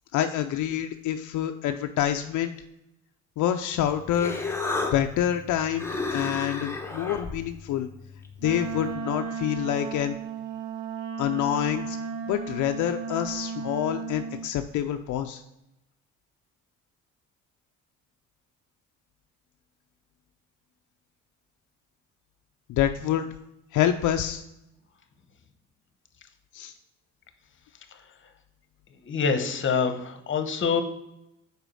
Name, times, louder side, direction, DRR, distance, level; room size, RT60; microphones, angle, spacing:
voice 1, 0.1-2.5 3.4-4.4 4.9-7.9 8.4-10.2 11.2-12.0 12.3-15.4 22.7-23.3 23.7-24.4 26.5-26.7, left 11 dB, 75° left, 6 dB, 0.5 m, -27 dB
Human voice, 3.7-8.9, left 3 dB, 10° left, 0.9 m, -34 dB
Wind instrument woodwind instrument, 8.4-14.5, right 5 dB, 80° right, 0.7 m, -34 dB
voice 2, 29.0-30.8, left 5 dB, 40° left, 9 dB, 0.9 m, -26 dB
5.0 x 4.7 x 6.2 m, 0.87 s
cardioid pair, 90°, 30 cm